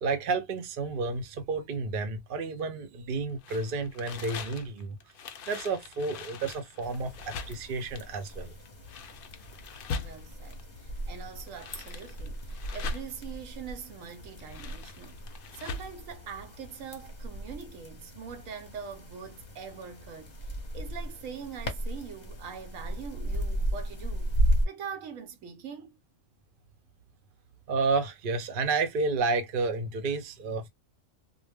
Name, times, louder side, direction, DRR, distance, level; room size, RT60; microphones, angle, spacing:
voice 1, 0.0-5.0 5.5-8.5 27.7-30.7, right 4 dB, 50° right, 0.7 m, -31 dB
sound 1, 3.4-10.6 11.3-13.3 14.2-16.0, left 5 dB, 65° left, 0.5 m, -42 dB
sound 2, 6.8-24.7, right 1 dB, 40° left, 0.8 m, -35 dB
voice 2, 9.9-15.2 15.5-24.4 24.7-26.0, right 6 dB, 80° right, 1.0 m, -43 dB
2.5 x 2.0 x 3.3 m
omnidirectional pair, 1.4 m